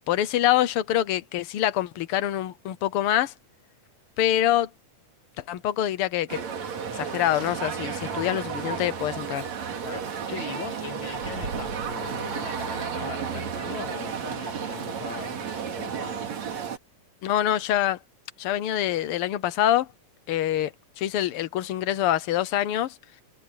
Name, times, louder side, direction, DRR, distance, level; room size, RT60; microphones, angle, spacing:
voice 1, 0.1-3.3 4.2-4.7 5.5-6.4 6.9-9.4 17.2-18.0 18.4-19.9 20.3-23.0, left 12 dB, 80° left, 1.2 m, -25 dB
sound 1, 6.3-16.8, right 6 dB, 60° right, 3.6 m, -32 dB
voice 2, 9.8-16.2, left 6 dB, 45° left, 2.4 m, -40 dB
omnidirectional pair, 3.7 m